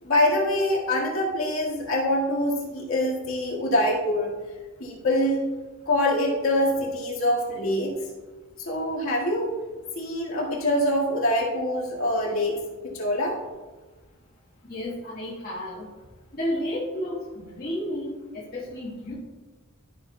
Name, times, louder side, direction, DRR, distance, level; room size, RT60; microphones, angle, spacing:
voice 1, 0.0-4.4 4.8-5.5 5.9-7.9 8.6-9.6 10.0-12.6 12.9-13.4, left 1 dB, 70° left, -4 dB, 1.8 m, -24 dB
voice 2, 14.6-15.9 16.3-19.1, left 1 dB, 45° left, -7 dB, 1.4 m, -32 dB
12.5 x 6.0 x 2.2 m, 1.3 s
head